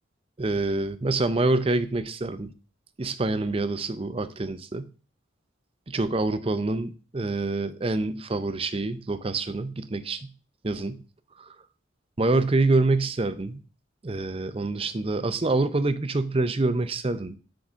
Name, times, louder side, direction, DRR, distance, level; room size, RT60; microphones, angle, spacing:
voice 1, 0.4-2.5 3.0-4.9 5.9-10.3 10.6-11.0 11.4-11.5 12.2-13.6 14.0-17.4, right 2 dB, 30° right, 0.5 m, -26 dB
8.2 x 3.8 x 6.1 m
head